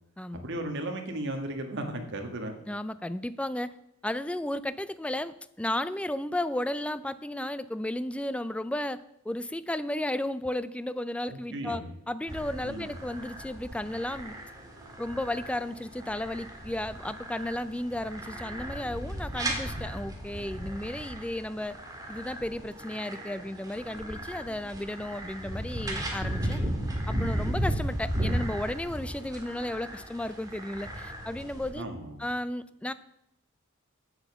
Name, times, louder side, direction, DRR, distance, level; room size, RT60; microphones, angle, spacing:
voice 1, 0.3-2.6 11.3-11.9 12.6-12.9 31.7-32.3, right 1 dB, 60° right, 4 dB, 1.6 m, -35 dB
voice 2, 2.7-3.7 4.0-14.4 15.0-21.8 22.1-26.6 27.1-31.9 32.2-32.9, left 1 dB, 5° left, 14 dB, 0.3 m, -34 dB
sound 1, 12.3-31.7, right 1 dB, 15° right, 1.8 m, -35 dB
8.2 x 7.8 x 7.0 m, 0.82 s
head